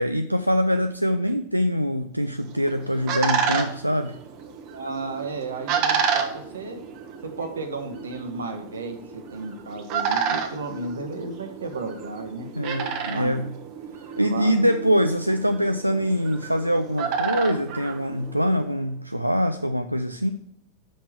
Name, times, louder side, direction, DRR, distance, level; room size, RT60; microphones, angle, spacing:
voice 1, 0.0-4.2 12.5-13.5 14.2-20.3, equal, 90° right, 8 dB, 0.3 m, -24 dB
sound 1, 2.4-18.7, right 6 dB, 45° right, 1.0 m, -30 dB
voice 2, 4.7-6.8 7.2-12.5 13.1-13.5 14.3-14.5, right 3 dB, 70° right, 7 dB, 1.1 m, -33 dB
5.8 x 5.1 x 6.0 m, 0.78 s
figure-of-eight pair, 90°, 0 cm